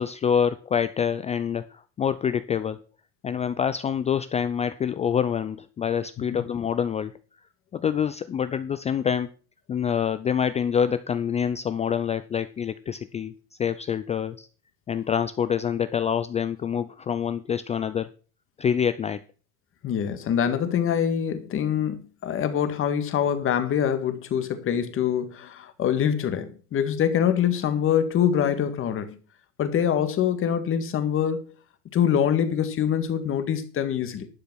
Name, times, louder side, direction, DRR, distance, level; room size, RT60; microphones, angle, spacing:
voice 1, 0.0-2.8 3.2-7.1 7.7-9.3 9.7-13.3 13.6-14.5 14.9-18.1 18.6-19.2, left 8 dB, 20° left, 0.4 m, -26 dB
voice 2, 19.8-29.2 29.6-31.5 31.9-34.3, left 8 dB, 35° left, 1.9 m, -24 dB
11.5 x 6.8 x 6.3 m
supercardioid pair, 130°, 37 cm